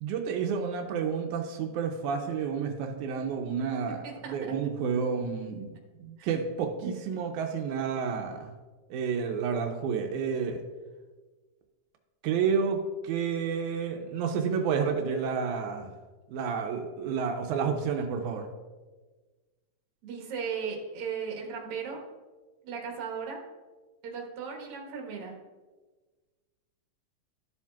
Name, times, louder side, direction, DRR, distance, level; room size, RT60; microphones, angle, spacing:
voice 1, 0.0-5.7 6.0-8.5 8.9-10.6 12.2-15.9 16.3-18.5, right 6 dB, 85° right, 4 dB, 2.1 m, -30 dB
voice 2, 4.0-4.4 6.2-6.3 20.0-22.0 22.6-23.4 24.0-25.4, right 6 dB, 55° right, 0 dB, 2.1 m, -36 dB
13.0 x 7.2 x 2.3 m, 1.3 s
omnidirectional pair, 3.5 m